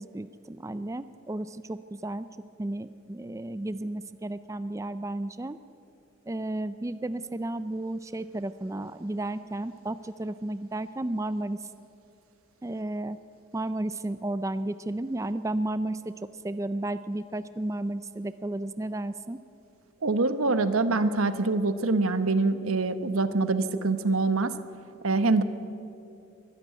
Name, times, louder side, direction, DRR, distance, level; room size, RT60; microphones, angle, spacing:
voice 1, 0.0-2.3 2.6-5.6 6.3-11.6 12.6-13.2 13.5-19.4, right 1 dB, 15° right, 13 dB, 0.4 m, -33 dB
voice 2, 20.0-24.6 25.0-25.4, right 3 dB, 90° right, 11 dB, 1.1 m, -25 dB
23.0 x 12.5 x 9.3 m, 2.7 s
head